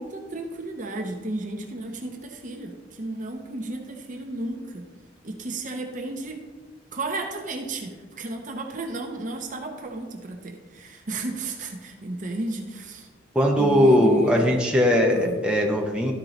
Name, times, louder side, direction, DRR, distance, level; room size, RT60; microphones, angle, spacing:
voice 1, 0.0-4.9 5.2-6.4 6.9-13.1 13.6-14.6 15.1-15.4, right 2 dB, 45° right, 3 dB, 0.8 m, -33 dB
voice 2, 13.3-16.1, equal, 5° right, -1 dB, 0.9 m, -19 dB
12.5 x 4.5 x 4.0 m, 1.3 s
head